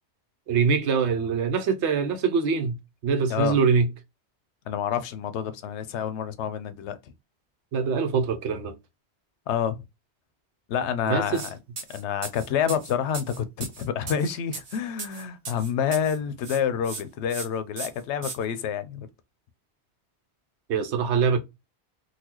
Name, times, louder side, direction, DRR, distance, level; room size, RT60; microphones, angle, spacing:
voice 1, 0.5-2.8 3.0-3.9 7.7-8.7 11.1-11.4 20.7-21.4, right 5 dB, 85° right, 1.0 m, -23 dB
voice 2, 4.7-7.0 9.5-9.8 10.7-11.6 11.9-19.1, left 8 dB, 85° left, 0.9 m, -28 dB
sound 1, 11.3-11.5 11.8-16.2 16.4-17.0 17.3-17.5 17.8-18.4, right 5 dB, 60° right, 1.0 m, -37 dB
3.9 x 2.3 x 2.9 m
omnidirectional pair, 1.1 m